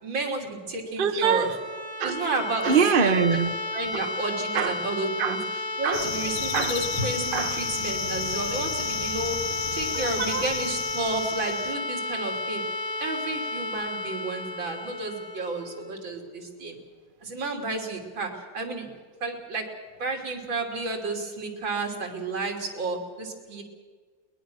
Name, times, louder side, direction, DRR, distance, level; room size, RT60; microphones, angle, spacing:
voice 1, 0.0-1.5 2.0-2.7 3.0-3.2 3.7-9.4 9.7-12.6 13.0-16.8 17.2-18.9 19.2-19.7 20.0-23.6, right 3 dB, 85° right, 2 dB, 3.8 m, -31 dB
sound 1, 1.0-16.8, left 2 dB, 25° left, 0.6 m, -33 dB
voice 2, 1.0-1.5 2.0-2.1 2.6-3.5 3.9-4.0 4.5-4.7 5.2-5.4 5.8-6.1 6.5-6.7 7.3-7.6 9.9-10.4, right 6 dB, 35° right, 8 dB, 1.0 m, -24 dB
sound 2, 5.9-11.7, left 8 dB, 75° left, 1.7 m, -33 dB
22.0 x 20.5 x 6.3 m, 1.5 s
omnidirectional pair, 2.0 m